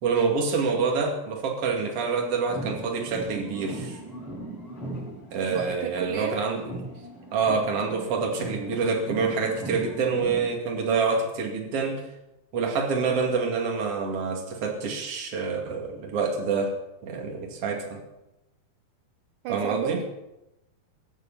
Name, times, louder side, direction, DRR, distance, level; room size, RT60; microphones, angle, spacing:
voice 1, 0.0-4.0 5.3-6.8 7.3-12.0 12.5-16.8 17.0-18.0 19.5-20.0, right 5 dB, 40° right, 1 dB, 2.8 m, -27 dB
sound 1, 2.5-6.3 6.6-10.5, right 1 dB, 30° left, 8.7 m, -38 dB
voice 2, 5.5-6.4 19.4-20.0, right 8 dB, 75° right, 6 dB, 2.0 m, -32 dB
17.0 x 12.0 x 5.6 m, 0.93 s
omnidirectional pair, 4.8 m